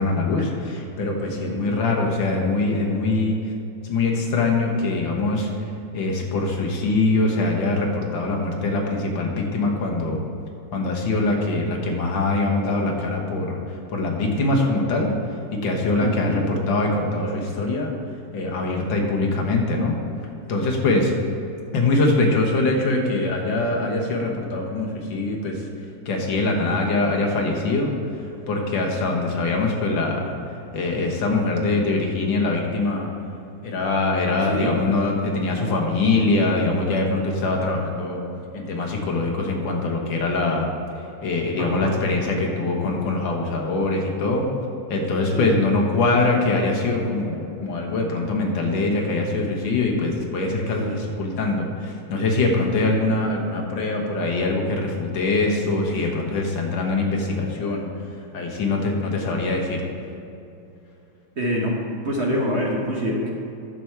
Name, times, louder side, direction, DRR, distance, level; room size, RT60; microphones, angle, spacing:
voice 1, 0.0-3.5 3.8-10.2 10.7-17.9 18.3-20.0 20.5-21.1 21.7-25.7 26.1-30.3 30.7-33.1 33.6-38.2 38.5-40.7 41.0-44.5 44.9-57.9 58.3-59.9, left 2 dB, 65° left, 0 dB, 1.9 m, -23 dB
voice 2, 1.5-1.8 16.0-16.4 34.5-34.7 41.6-42.0 45.3-45.5 61.4-61.8 62.0-63.3, equal, 45° right, -2 dB, 0.9 m, -25 dB
10.0 x 6.2 x 4.6 m, 2.8 s
omnidirectional pair, 2.3 m